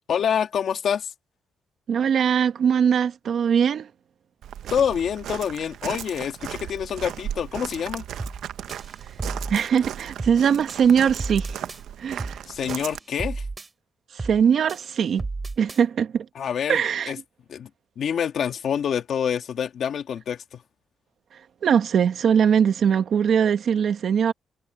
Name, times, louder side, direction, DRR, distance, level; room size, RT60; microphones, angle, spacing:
voice 1, 0.1-1.1 4.7-8.1 12.5-13.5 16.4-17.2 17.5-17.7 18.0-20.6, left 8 dB, 55° left, 2.0 m, -26 dB
voice 2, 1.9-3.9 9.5-11.6 12.0-12.4 14.1-15.2 15.6-16.3 16.7-17.1 21.6-24.3, right 7 dB, 55° right, 1.5 m, -21 dB
Walk footsteps, 4.4-13.0, right 10 dB, 75° right, 0.9 m, -36 dB
sound 1, 8.2-8.4 8.7-9.7 10.2-10.4 10.7-11.8 12.2-12.4 12.7-13.7 14.2-14.4 14.7-15.8, right 3 dB, 20° right, 2.6 m, -33 dB
cardioid pair, 160°, 0 cm